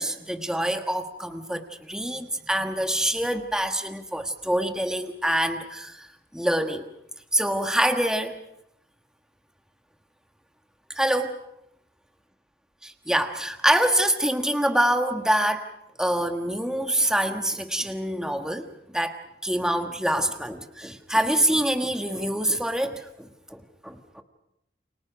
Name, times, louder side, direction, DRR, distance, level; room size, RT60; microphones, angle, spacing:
voice 1, 0.0-6.1 6.3-6.9 7.3-8.4 10.9-11.3 12.8-15.7 16.0-24.2, right 1 dB, 5° right, 6 dB, 1.4 m, -25 dB
29.5 x 26.5 x 5.1 m, 0.80 s
head